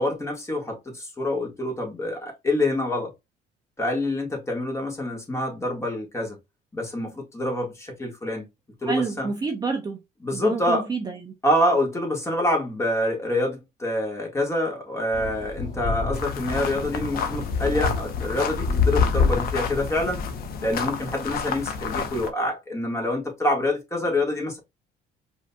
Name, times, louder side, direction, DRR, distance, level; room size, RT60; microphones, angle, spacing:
voice 1, 0.0-3.1 3.8-6.4 6.7-8.5 8.8-9.3 10.2-10.9 11.4-20.2 20.6-24.6, left 1 dB, 15° left, 1.6 m, -26 dB
voice 2, 8.8-10.0 10.3-11.3, right 4 dB, 25° right, 0.6 m, -28 dB
sound 1, 15.1-20.6, left 5 dB, 35° left, 2.3 m, -27 dB
sound 2, 16.1-22.3, left 6 dB, 60° left, 0.8 m, -32 dB
4.9 x 2.8 x 2.2 m
cardioid pair, 110°, 17 cm